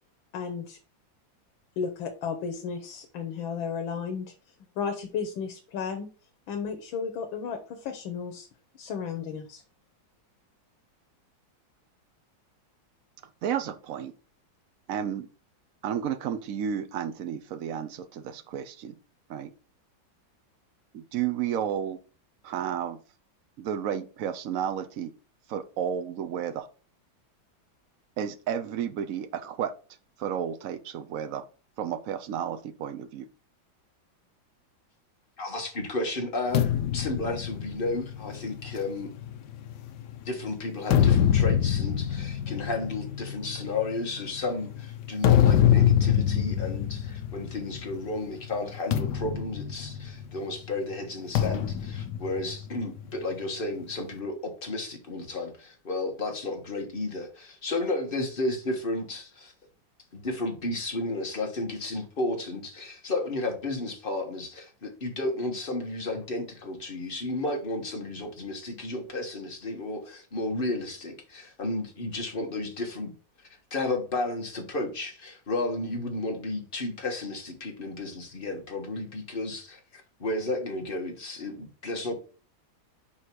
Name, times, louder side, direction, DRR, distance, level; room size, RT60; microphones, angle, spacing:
voice 1, 0.3-0.8 1.8-4.3 4.8-6.1 6.5-8.5 8.7-9.6, left 6 dB, 85° left, 1.7 m, -33 dB
voice 2, 13.4-14.1 14.9-15.3 15.8-18.9 19.3-19.5 20.9-22.0 22.4-23.0 23.6-25.1 25.5-26.7 28.2-29.7 30.2-31.4 31.8-33.3, right 9 dB, 65° right, 0.9 m, -32 dB
voice 3, 35.4-39.1 40.2-59.5 60.1-73.1 73.7-82.1, left 2 dB, 30° left, 1.5 m, -33 dB
sound 1, 36.5-40.1 40.7-48.1 48.3-48.6 48.9-50.5 51.4-53.1, left 10 dB, 65° left, 1.2 m, -25 dB
5.9 x 4.7 x 4.6 m
omnidirectional pair, 2.1 m